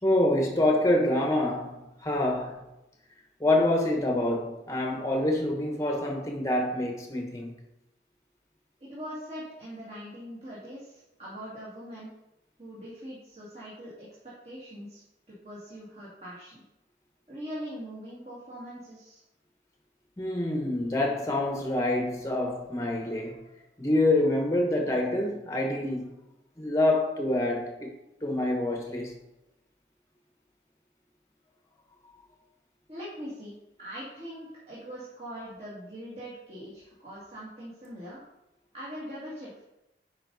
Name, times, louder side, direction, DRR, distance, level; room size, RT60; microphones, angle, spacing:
voice 1, 0.0-2.6 3.4-7.5 20.2-23.4 23.8-26.1 26.6-27.9 28.2-29.1, left 1 dB, 15° left, 1.1 m, -26 dB
voice 2, 8.9-12.1 12.6-14.1 14.4-16.6 17.3-19.2 32.9-33.5 33.8-38.2 38.7-39.6, equal, 35° right, 2.2 m, -42 dB
9.5 x 5.4 x 4.1 m
head